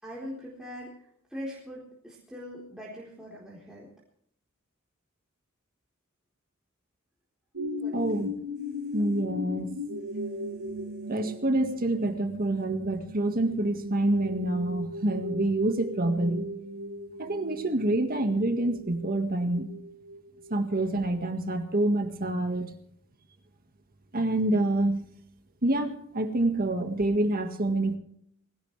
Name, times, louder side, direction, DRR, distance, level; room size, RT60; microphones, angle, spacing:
voice 1, 0.0-3.9 7.8-8.2, equal, 5° right, -6 dB, 4.1 m, -42 dB
sound 1, 7.5-21.1 21.6-21.7, left 1 dB, 90° right, 1.6 m, -38 dB
voice 2, 7.9-8.3 8.9-9.7 11.1-16.5 17.2-19.7 20.5-22.7 24.1-25.0 25.6-28.0, right 1 dB, 45° right, 6 dB, 1.8 m, -27 dB
20.5 x 18.0 x 3.4 m, 0.68 s
head